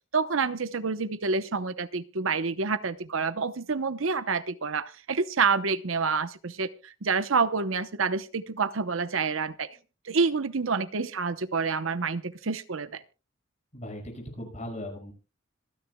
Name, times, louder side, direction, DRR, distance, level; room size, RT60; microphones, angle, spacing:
voice 1, 0.1-9.7 10.0-13.0, right 4 dB, 85° right, 13 dB, 0.9 m, -28 dB
voice 2, 13.7-15.1, left 1 dB, 35° left, 1 dB, 5.9 m, -38 dB
26.5 x 10.0 x 2.3 m, 0.33 s
head